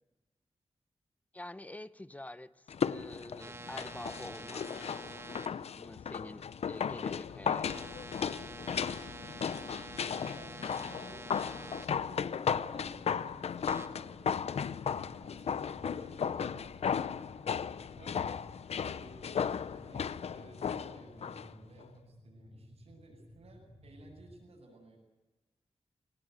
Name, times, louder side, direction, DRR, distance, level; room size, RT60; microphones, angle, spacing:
voice 1, 1.3-4.9 5.8-7.8, left 1 dB, 15° left, 15 dB, 0.8 m, -47 dB
sound 1, 2.7-21.5 21.8-21.9, left 7 dB, 75° left, 0.7 m, -35 dB
sound 2, 3.4-5.5 7.7-11.8 13.7-13.9, right 3 dB, 25° right, 1.9 m, -47 dB
voice 2, 10.3-17.3 18.0-18.3 18.8-25.0, right 2 dB, 70° right, -6 dB, 7.4 m, -57 dB
sound 3, 12.7-24.4, left 1 dB, 30° left, 7.8 m, -57 dB
22.5 x 19.0 x 9.3 m, 1.2 s
wide cardioid pair, 110°, 11 cm